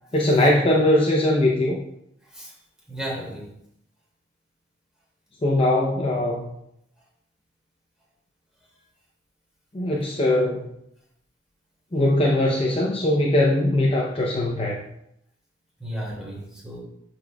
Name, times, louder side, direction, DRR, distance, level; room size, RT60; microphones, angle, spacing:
voice 1, 0.1-1.8 5.4-6.5 9.7-10.7 11.9-14.8, left 1 dB, 30° left, -3 dB, 0.7 m, -21 dB
voice 2, 2.9-3.5 15.8-16.8, right 1 dB, 5° right, -5 dB, 2.2 m, -34 dB
11.0 x 4.4 x 2.3 m, 0.78 s
head